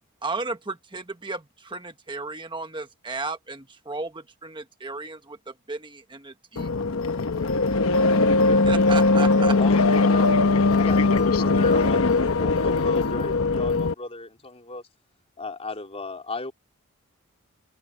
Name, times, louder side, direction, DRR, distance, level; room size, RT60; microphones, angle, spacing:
voice 1, 0.2-6.7 8.7-9.6, right 3 dB, 20° right, 1.3 m, -34 dB
sound 1, 6.6-13.9, left 3 dB, 65° left, 1.0 m, -20 dB
voice 2, 8.5-8.8 9.6-10.3 10.7-12.0 12.4-14.8 15.4-16.5, left 3 dB, 30° left, 3.9 m, -35 dB
voice 3, 9.7-12.3, left 3 dB, 80° left, 7.4 m, -36 dB
head